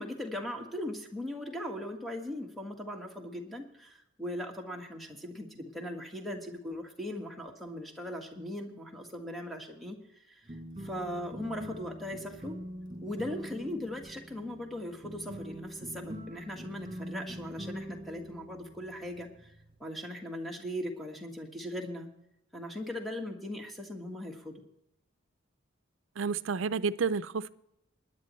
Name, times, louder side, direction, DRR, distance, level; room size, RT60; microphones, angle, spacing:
voice 1, 0.0-12.6 13.0-19.5 19.8-22.1 22.5-24.6, left 1 dB, ahead, 1.6 m, -39 dB
sound 1, 10.5-19.7, equal, 25° right, 4.8 m, -44 dB
voice 2, 26.2-27.5, right 5 dB, 75° right, 0.5 m, -30 dB
20.0 x 10.5 x 3.1 m
head